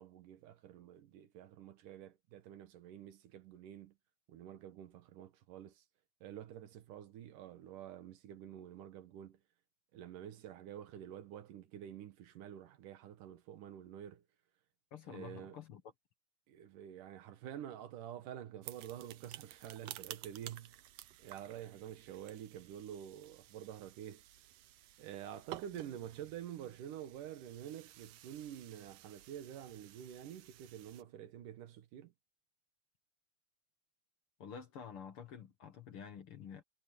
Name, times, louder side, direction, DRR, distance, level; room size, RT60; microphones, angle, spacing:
voice 1, 0.0-4.0 4.3-5.8 6.2-9.4 9.9-14.2 15.1-15.6 16.5-20.9 21.2-24.2 25.0-32.1, right 10 dB, 85° right, 3.0 m, -48 dB
voice 2, 14.9-15.8 34.4-36.6, left 7 dB, 55° left, 1.8 m, -49 dB
sound 1, 18.6-31.0, right 14 dB, 70° right, 1.7 m, -53 dB
omnidirectional pair, 3.6 m